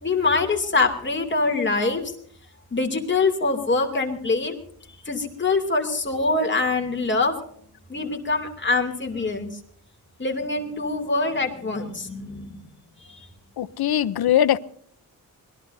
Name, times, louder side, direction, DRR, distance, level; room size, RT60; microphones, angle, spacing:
voice 1, 0.0-2.1 2.7-4.6 5.0-7.3 7.9-9.5 10.2-12.6 13.1-13.2, left 3 dB, 30° left, 2.7 m, -24 dB
voice 2, 13.6-14.6, left 11 dB, 90° left, 0.7 m, -21 dB
25.5 x 20.5 x 2.7 m
wide cardioid pair, 165°, 36 cm